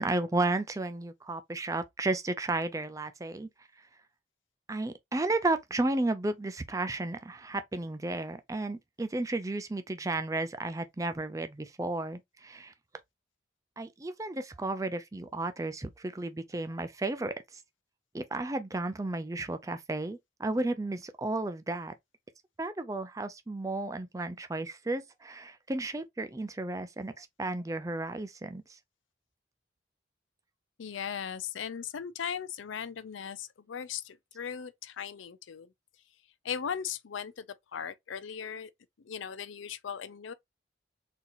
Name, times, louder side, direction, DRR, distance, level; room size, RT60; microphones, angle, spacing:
voice 1, 0.0-3.5 4.7-12.7 13.8-17.6 18.1-21.9 22.6-28.6, right 2 dB, 15° right, 0.4 m, -33 dB
voice 2, 30.8-35.7 36.4-37.5 37.7-38.7 39.0-40.3, left 7 dB, 90° left, 0.5 m, -38 dB
3.9 x 2.9 x 2.6 m
head